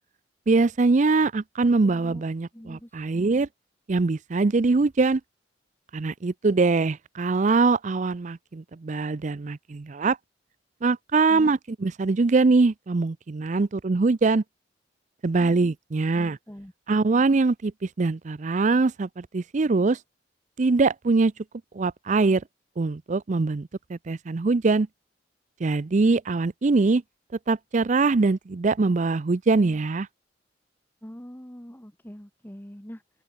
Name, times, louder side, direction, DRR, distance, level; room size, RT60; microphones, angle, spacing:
voice 1, 0.5-3.5 3.9-5.2 5.9-10.2 10.8-14.4 15.2-16.4 16.9-20.0 20.6-21.3 21.7-22.4 22.8-24.9 25.6-27.0 27.5-30.1, right 3 dB, 40° right, 0.5 m, -23 dB
voice 2, 1.8-2.2 2.5-3.3 11.3-11.5 16.1-16.7 31.0-33.2, equal, 10° left, 1.6 m, -43 dB
open air
head